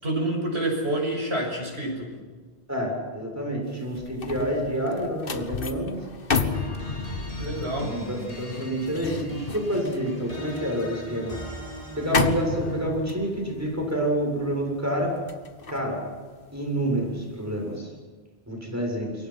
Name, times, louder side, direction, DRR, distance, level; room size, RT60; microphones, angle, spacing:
voice 1, 0.0-2.1 7.4-8.0, right 1 dB, 80° right, 1 dB, 6.7 m, -28 dB
voice 2, 2.7-6.0 7.9-11.4 11.9-15.1 15.7-16.0 16.5-17.9 18.5-19.1, equal, 15° right, 0 dB, 7.3 m, -28 dB
sound 1, 3.7-17.0 17.4-17.7, left 4 dB, 60° left, 1.5 m, -32 dB
sound 2, 6.3-13.0, left 1 dB, 35° left, 5.2 m, -39 dB
27.5 x 23.5 x 6.0 m, 1.5 s
omnidirectional pair, 1.1 m